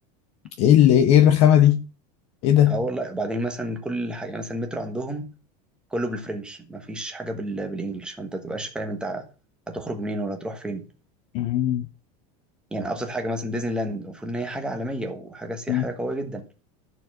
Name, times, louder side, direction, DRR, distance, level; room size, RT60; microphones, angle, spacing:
voice 1, 0.6-1.9 2.4-2.8 11.3-11.9 15.7-15.8, left 11 dB, 30° left, 0.5 m, -17 dB
voice 2, 2.7-5.3 5.9-9.2 9.7-10.8 12.7-16.5, right 1 dB, 5° right, 1.2 m, -30 dB
13.5 x 4.6 x 6.0 m
supercardioid pair, 180°, 20 cm